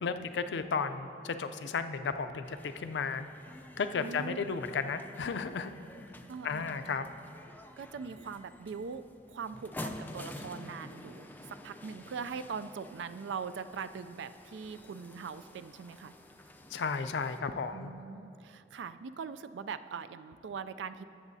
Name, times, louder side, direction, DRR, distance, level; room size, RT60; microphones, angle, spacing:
voice 1, 0.0-3.3 3.8-5.7 6.4-7.1 16.7-17.9, left 5 dB, 70° left, 10 dB, 0.4 m, -34 dB
sound 1, 2.4-17.4, left 1 dB, 10° left, 0.4 m, -49 dB
voice 2, 4.0-4.5 6.3-7.1 7.8-9.0 9.3-16.1 17.6-21.0, right 6 dB, 75° right, 12 dB, 0.4 m, -41 dB
18.0 x 7.1 x 2.7 m, 2.7 s
head